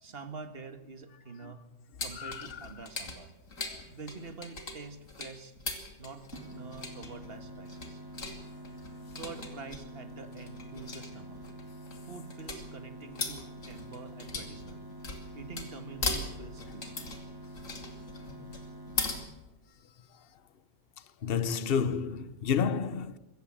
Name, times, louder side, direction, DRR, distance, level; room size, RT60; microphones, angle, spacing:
voice 1, 0.0-1.6 2.0-3.3 3.9-5.5 6.0-8.0 9.1-11.4 12.0-14.8 15.3-17.2, right 4 dB, 50° right, 1.8 m, -46 dB
sound 1, 2.0-19.2, left 3 dB, 85° left, 3.1 m, -39 dB
voice 2, 2.2-2.5 21.2-23.2, left 6 dB, 50° left, 1.0 m, -30 dB
sound 2, 6.3-19.3, equal, 15° right, 2.1 m, -47 dB
25.0 x 15.0 x 7.5 m
omnidirectional pair, 1.3 m